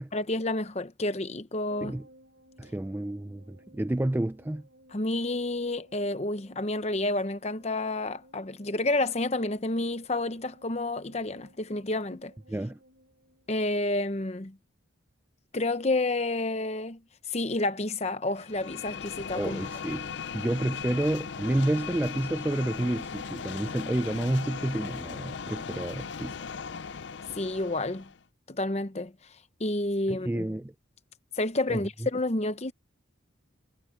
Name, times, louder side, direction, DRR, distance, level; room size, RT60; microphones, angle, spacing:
voice 1, 0.1-2.0 4.9-12.3 13.5-14.6 15.5-17.0 17.3-19.7 27.4-28.1 28.5-29.1 29.6-30.5 31.3-32.7, left 2 dB, 30° left, 0.8 m, -30 dB
sound 1, 1.7-14.2 14.5-14.6, right 1 dB, 60° right, 4.3 m, -58 dB
voice 2, 2.6-4.6 12.5-12.8 19.3-20.1 20.3-26.5 30.1-30.7 31.7-31.8, right 1 dB, 10° right, 0.3 m, -30 dB
sound 2, 18.4-28.2, left 6 dB, 60° left, 0.5 m, -38 dB
head